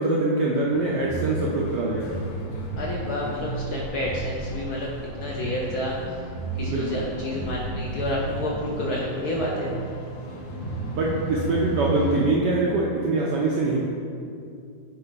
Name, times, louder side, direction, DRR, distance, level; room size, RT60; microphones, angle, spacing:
voice 1, 0.0-2.2 6.6-7.0 10.5-10.6 10.8-13.8, right 2 dB, 65° right, -4 dB, 1.1 m, -24 dB
sound 1, 0.7-12.3, right 2 dB, 85° left, 1.9 m, -33 dB
voice 2, 2.8-6.2 6.5-9.7, left 1 dB, 70° left, -3 dB, 0.9 m, -30 dB
8.1 x 4.3 x 3.9 m, 2.4 s
omnidirectional pair, 2.3 m